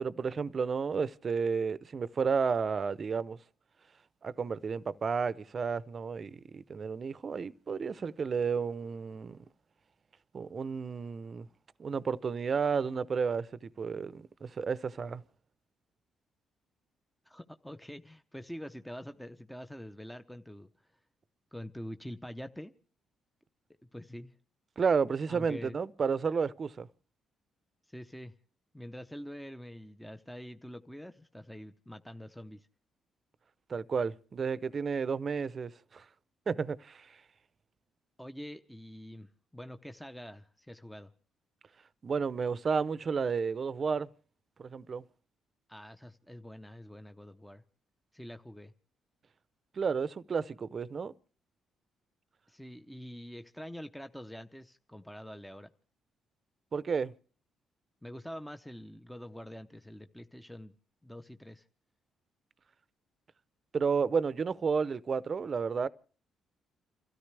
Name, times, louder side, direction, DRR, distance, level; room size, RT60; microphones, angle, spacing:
voice 1, 0.0-3.4 4.2-9.4 10.3-11.5 11.8-15.2 24.8-26.9 33.7-36.0 36.5-37.2 42.0-44.1 44.6-45.0 49.7-51.1 56.7-57.1 63.7-65.9, right 5 dB, 40° right, 0.7 m, -32 dB
voice 2, 17.3-20.7 21.5-22.7 23.9-24.3 25.3-25.8 27.9-28.3 28.7-32.7 38.2-41.1 45.7-47.6 48.1-48.7 52.5-55.7 58.0-60.7 61.0-61.6, equal, 5° left, 0.7 m, -45 dB
29.5 x 13.5 x 3.3 m
cardioid pair, 90°, 0 cm